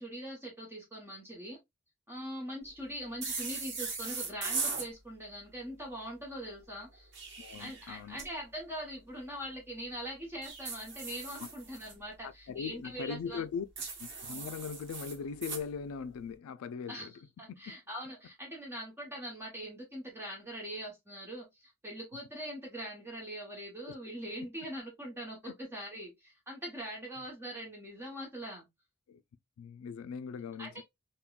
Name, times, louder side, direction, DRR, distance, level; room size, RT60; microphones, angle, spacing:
voice 1, 0.0-1.6 2.1-7.1 7.6-13.4 16.9-17.1 17.4-28.7 30.6-30.8, equal, 10° right, 0.9 m, -42 dB
sound 1, 3.2-4.9 6.9-8.3 10.4-11.9 13.8-15.6, right 4 dB, 55° right, 1.0 m, -39 dB
voice 2, 7.4-8.2 12.2-13.7 14.0-17.1 17.5-17.6 23.9-24.0 25.5-25.6 27.2-27.3 29.1-29.2 29.6-30.8, left 6 dB, 85° left, 0.3 m, -40 dB
3.6 x 2.2 x 2.3 m
head